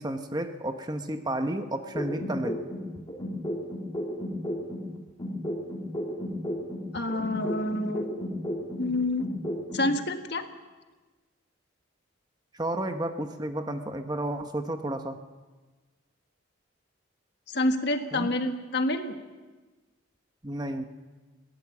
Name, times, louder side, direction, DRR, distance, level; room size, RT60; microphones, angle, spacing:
voice 1, 0.0-2.6 12.5-15.2 18.1-18.3 20.4-20.9, right 1 dB, 20° right, 7 dB, 1.0 m, -32 dB
sound 1, 1.9-4.9 5.2-8.9 9.2-9.9, equal, 25° left, 3.3 m, -33 dB
voice 2, 6.9-8.1 8.8-9.3 9.7-10.5 17.5-19.2, left 2 dB, 55° left, 6 dB, 1.6 m, -28 dB
21.5 x 18.0 x 7.3 m, 1.3 s
head